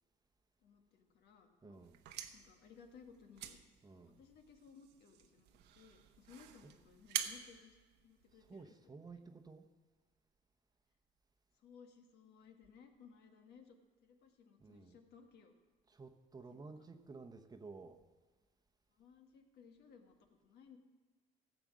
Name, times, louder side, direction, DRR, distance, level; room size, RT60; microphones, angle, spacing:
voice 1, 0.6-1.8 2.3-3.6 3.9-5.5 5.7-9.2 11.5-13.8 14.0-15.5 16.5-16.9 18.9-20.8, left 6 dB, 75° left, 4 dB, 1.6 m, -61 dB
voice 2, 1.6-2.0 3.8-4.2 6.6-6.7 8.3-9.7 14.6-15.0 15.9-18.0, right 4 dB, 25° right, 6 dB, 0.9 m, -53 dB
sound 1, 1.8-8.6, right 10 dB, 85° right, 0.9 m, -47 dB
14.5 x 8.1 x 6.2 m, 1.4 s
cardioid pair, 110°, 17 cm